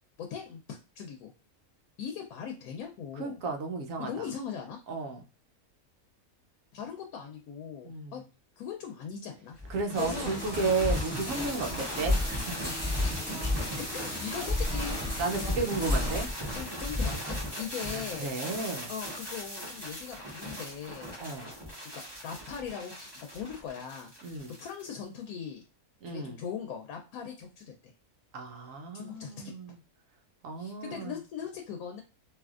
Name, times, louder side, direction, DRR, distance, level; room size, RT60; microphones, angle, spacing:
voice 1, 0.2-1.3 2.0-3.4 4.0-4.8 6.7-8.2 8.6-9.6 10.0-10.7 13.0-15.2 15.4-15.8 16.5-18.3 18.9-21.2 21.9-25.6 26.0-27.9 28.9-29.5 30.6-32.0, left 7 dB, 80° left, 3 dB, 1.1 m, -40 dB
voice 2, 3.1-4.3 4.9-5.2 7.8-8.2 9.7-11.7 12.0-13.0 15.2-16.3 17.9-18.9 21.2-21.5 24.2-24.5 26.0-26.4 28.3-29.8 30.4-31.2, right 4 dB, 70° right, 4 dB, 1.0 m, -33 dB
sound 1, 9.6-24.9, left 1 dB, 20° right, 1.1 m, -34 dB
sound 2, 9.9-16.3, equal, 10° left, 1.2 m, -39 dB
3.3 x 2.7 x 2.4 m, 0.32 s
omnidirectional pair, 1.5 m